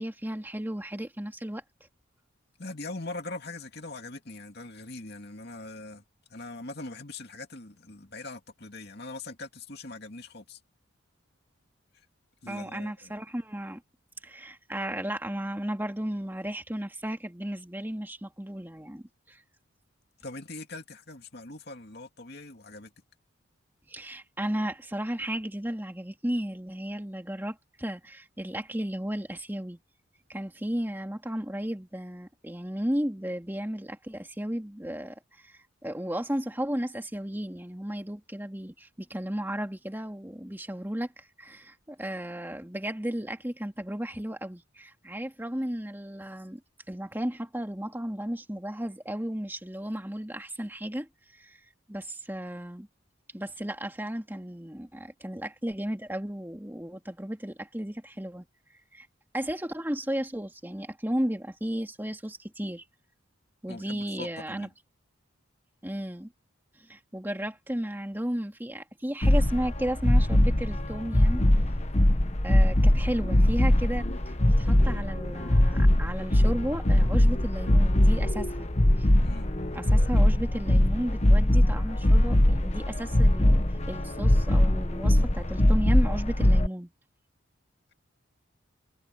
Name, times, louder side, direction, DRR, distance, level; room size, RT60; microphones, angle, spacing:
voice 1, 0.0-1.6 12.5-13.8 14.2-19.4 23.9-29.8 30.3-46.6 46.9-51.6 51.9-52.9 53.3-58.5 58.9-59.1 59.3-62.8 63.6-64.7 65.8-66.3 66.8-71.4 72.4-78.7 79.0-79.1 79.7-86.9, equal, 10° right, 2.2 m, -34 dB
voice 2, 2.6-6.0 6.3-10.6 12.4-13.1 20.2-22.9 63.7-64.7 79.2-79.5, left 2 dB, 50° left, 2.6 m, -41 dB
sound 1, 69.2-86.7, left 1 dB, 30° left, 1.2 m, -22 dB
head